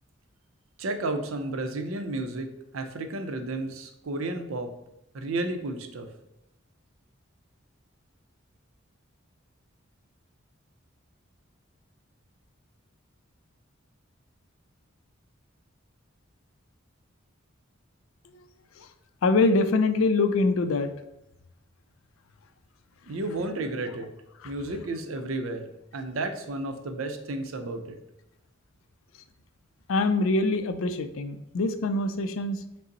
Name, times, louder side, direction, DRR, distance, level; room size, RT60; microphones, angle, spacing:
voice 1, 0.8-2.5 2.7-4.7 5.1-6.1 23.1-24.1 24.4-25.6 25.9-28.0, right 2 dB, 80° right, 7 dB, 0.5 m, -32 dB
voice 2, 19.2-20.9 24.4-24.5 29.9-32.6, left 3 dB, 75° left, 9 dB, 0.4 m, -24 dB
5.2 x 2.0 x 3.9 m, 0.85 s
head